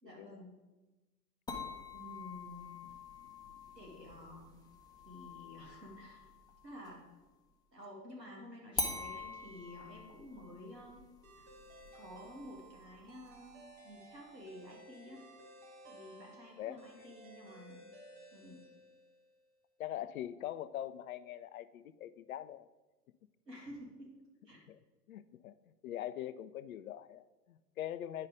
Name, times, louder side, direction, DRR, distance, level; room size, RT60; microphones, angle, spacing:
voice 1, 0.0-0.6 1.9-2.8 3.7-4.6 5.0-6.3 6.6-7.1 7.7-11.0 11.3-11.6 11.9-15.2 15.8-17.9 18.3-18.6 23.5-24.1 24.4-24.6, left 1 dB, 90° right, -2 dB, 2.8 m, -51 dB
sound 1, 1.5-7.1 8.8-13.8, left 3 dB, 10° left, 1.0 m, -45 dB
sound 2, 11.2-19.4, right 1 dB, 35° right, 2.3 m, -57 dB
voice 2, 19.8-22.7 24.7-24.8 25.1-28.3, left 12 dB, 60° left, 15 dB, 0.5 m, -43 dB
9.8 x 5.5 x 5.0 m, 1.2 s
figure-of-eight pair, 100°, 49 cm